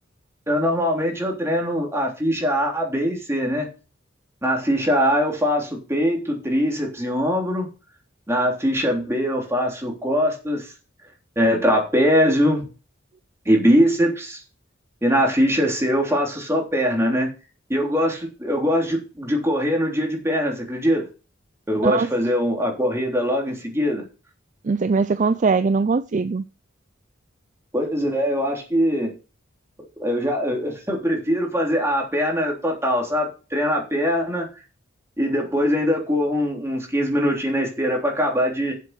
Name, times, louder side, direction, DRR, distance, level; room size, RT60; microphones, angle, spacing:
voice 1, 0.5-3.7 4.4-7.7 8.3-10.7 11.3-12.7 13.4-14.4 15.0-17.3 17.7-21.1 21.7-24.0 27.7-29.1 30.0-34.5 35.2-38.7, equal, 15° right, 3.4 m, -22 dB
voice 2, 24.6-26.4, right 4 dB, 40° right, 0.4 m, -21 dB
7.8 x 7.7 x 6.7 m
head